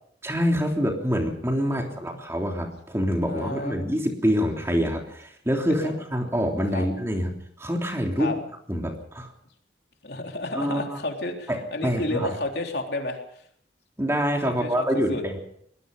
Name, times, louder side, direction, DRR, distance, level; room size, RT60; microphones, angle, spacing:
voice 1, 0.2-8.3 8.7-9.3 10.5-11.0 11.5-12.3 14.0-15.4, equal, 15° right, 2 dB, 3.4 m, -26 dB
voice 2, 3.3-3.8 5.8-5.9 6.7-6.9 8.2-8.4 10.0-13.2 14.4-15.2, left 2 dB, 65° left, 2 dB, 3.6 m, -31 dB
24.5 x 20.0 x 5.4 m, 0.66 s
head